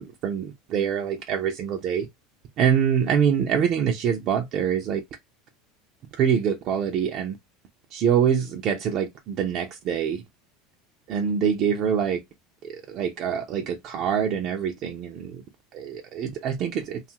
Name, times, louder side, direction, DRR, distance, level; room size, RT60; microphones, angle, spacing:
voice 1, 0.0-2.1 2.6-5.0 6.2-7.3 7.9-10.2 11.1-12.2 12.9-15.3 15.7-17.0, right 8 dB, 50° right, 0.4 m, -25 dB
2.7 x 2.3 x 2.8 m
supercardioid pair, 105°, 0 cm